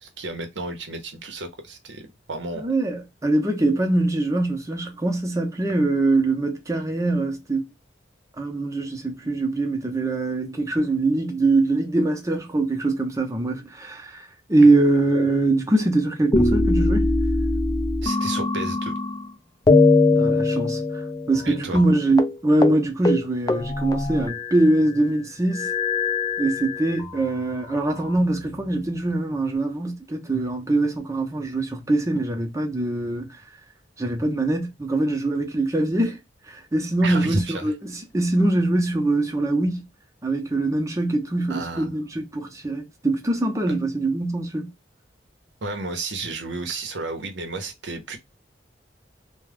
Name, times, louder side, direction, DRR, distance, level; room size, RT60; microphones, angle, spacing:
voice 1, 0.0-2.7 18.0-18.9 21.5-21.8 37.0-37.7 41.5-41.9 45.6-48.2, right 2 dB, 90° right, 0.8 m, -32 dB
voice 2, 2.6-7.7 8.4-17.1 20.1-25.7 26.4-33.4 34.0-36.2 36.5-39.9 40.2-44.7, right 2 dB, 20° right, 0.7 m, -23 dB
sound 1, 16.3-19.3 19.7-21.5 21.7-21.9 22.2-22.4 22.6-22.8 23.0-24.8 25.5-27.1 27.8-28.7, left 3 dB, 20° left, 0.4 m, -22 dB
2.3 x 2.2 x 3.3 m
head